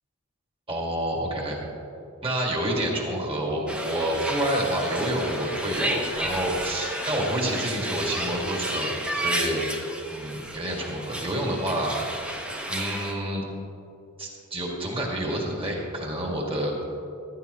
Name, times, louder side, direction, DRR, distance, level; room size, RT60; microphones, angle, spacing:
voice 1, 0.7-1.6 2.2-9.6 10.1-11.9 12.7-13.4 14.2-16.8, right 1 dB, 25° right, -1 dB, 2.1 m, -28 dB
sound 1, 3.7-13.1, right 1 dB, 5° right, 0.8 m, -32 dB
14.5 x 12.5 x 3.0 m, 2.8 s
head